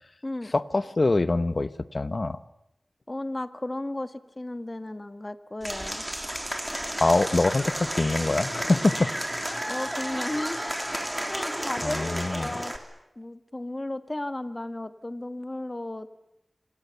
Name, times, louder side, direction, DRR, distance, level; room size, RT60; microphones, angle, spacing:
voice 1, 0.5-2.4 7.0-9.1 11.8-12.5, left 2 dB, 50° left, 14 dB, 1.1 m, -24 dB
voice 2, 3.1-6.0 9.7-11.0 11.3-12.7 13.1-16.1, left 1 dB, 30° left, 11 dB, 1.5 m, -34 dB
Applause / Crowd, 5.6-12.8, right 1 dB, 10° right, 3.2 m, -32 dB
27.5 x 27.0 x 7.0 m, 0.87 s
wide cardioid pair, 70°, 0 cm